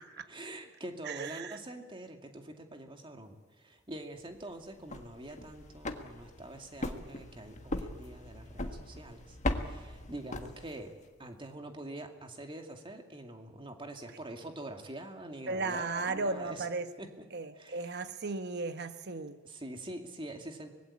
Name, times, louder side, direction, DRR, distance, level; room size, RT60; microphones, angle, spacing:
voice 1, 0.3-10.9 11.2-16.7 17.0-17.3 17.5-18.0 19.4-20.7, right 1 dB, 25° right, 4 dB, 2.3 m, -45 dB
voice 2, 1.1-1.6 15.5-16.9 17.3-19.4, right 3 dB, 50° right, 10 dB, 1.1 m, -35 dB
sound 1, 4.7-11.0, left 1 dB, 35° left, 1.6 m, -39 dB
25.0 x 20.0 x 8.5 m, 1.4 s
head